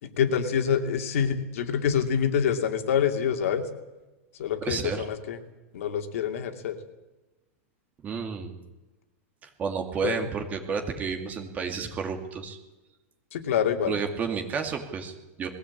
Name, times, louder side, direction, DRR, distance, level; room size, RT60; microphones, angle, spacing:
voice 1, 0.0-3.7 4.4-5.4 5.7-6.8 10.0-10.3 13.3-14.0, left 7 dB, 70° left, 5 dB, 2.6 m, -26 dB
voice 2, 4.6-5.1 8.0-8.5 9.4-12.6 13.9-15.5, right 6 dB, 20° right, 4 dB, 2.5 m, -31 dB
21.0 x 17.0 x 8.6 m, 1.1 s
supercardioid pair, 160°, 8 cm